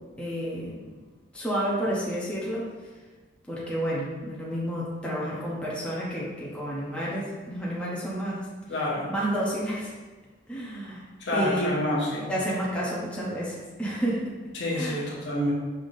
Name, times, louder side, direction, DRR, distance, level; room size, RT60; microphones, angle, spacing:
voice 1, 0.2-0.8 1.3-2.7 3.5-8.4 9.0-9.9 10.5-11.0 11.3-11.8 12.3-14.3 14.7-15.0, equal, 5° left, -7 dB, 0.7 m, -30 dB
voice 2, 8.7-9.1 11.3-12.3 14.5-15.5, left 1 dB, 60° left, -4 dB, 1.0 m, -27 dB
5.4 x 3.4 x 2.7 m, 1.3 s
head